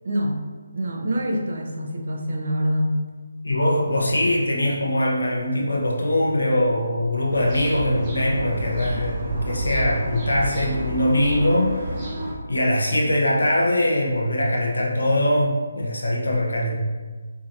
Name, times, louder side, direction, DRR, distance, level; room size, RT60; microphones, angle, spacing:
voice 1, 0.0-0.4 0.7-2.9, equal, 55° right, 1 dB, 0.7 m, -25 dB
voice 2, 3.4-12.0 12.5-16.7, left 1 dB, 85° left, -2 dB, 0.9 m, -22 dB
sound 1, 7.3-12.3, right 1 dB, 30° right, 1.0 m, -29 dB
4.8 x 2.8 x 2.6 m, 1.4 s
figure-of-eight pair, 160°, 0 cm